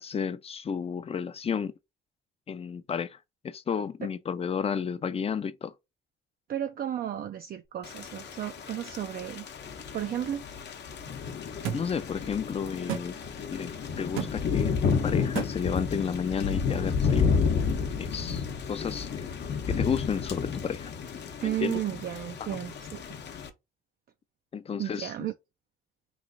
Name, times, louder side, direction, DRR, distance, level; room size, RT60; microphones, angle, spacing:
voice 1, 0.0-1.7 2.5-3.2 3.4-5.7 11.7-13.2 13.5-17.3 18.0-19.2 19.6-20.9 21.4-21.8 22.4-22.6 24.5-25.3, left 6 dB, 30° left, 0.4 m, -32 dB
voice 2, 6.5-9.5 9.9-10.4 21.4-23.0 24.8-25.3, right 11 dB, 50° right, 0.4 m, -33 dB
Thunder / Rain, 7.8-23.5, left 5 dB, 60° left, 0.8 m, -31 dB
sound 1, 11.6-11.8 12.9-13.1 14.2-14.3 15.4-15.5, right 8 dB, 85° right, 0.7 m, -30 dB
3.1 x 2.4 x 3.7 m
cardioid pair, 90°, 20 cm